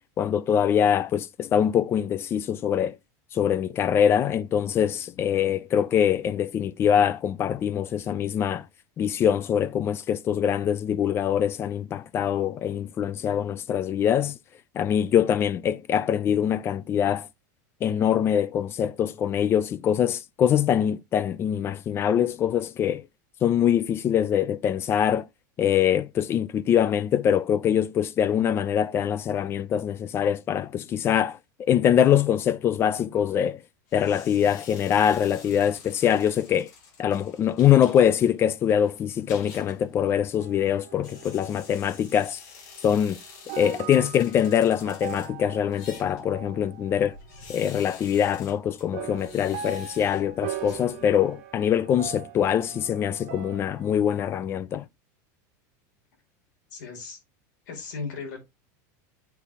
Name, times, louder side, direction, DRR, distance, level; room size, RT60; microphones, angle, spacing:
voice 1, 0.2-3.0 3.3-8.6 9.0-14.4 14.7-17.3 17.8-23.0 23.4-25.3 25.6-33.6 33.9-36.7 37.0-42.4 42.8-43.2 43.6-47.2 47.5-54.9, left 9 dB, 25° left, 0.4 m, -23 dB
sound 1, 33.9-51.4, left 5 dB, 65° left, 2.9 m, -49 dB
sound 2, 40.4-42.4 42.8-47.7 48.9-54.5, right 11 dB, 50° right, 1.5 m, -41 dB
voice 2, 56.7-57.2 57.7-58.4, left 4 dB, 85° left, 4.6 m, -36 dB
8.2 x 4.3 x 4.1 m
supercardioid pair, 155°, 10 cm